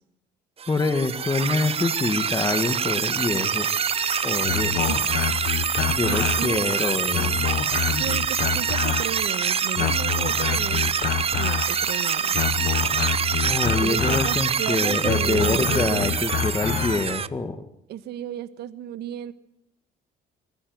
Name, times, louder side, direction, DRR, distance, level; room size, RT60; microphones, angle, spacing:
sound 1, 0.6-17.3, right 7 dB, 35° right, 0.8 m, -25 dB
voice 1, 0.7-3.7 4.2-4.8 5.9-7.5 13.4-17.6, left 3 dB, 20° left, 9 dB, 1.8 m, -26 dB
sound 2, 3.8-17.1, left 8 dB, 60° left, 1.3 m, -28 dB
voice 2, 4.7-5.1 5.5-6.8 8.0-12.4 13.8-16.2 17.9-19.3, right 11 dB, 75° right, 13 dB, 1.7 m, -34 dB
25.0 x 14.5 x 9.4 m, 0.75 s
cardioid pair, 110°, 17 cm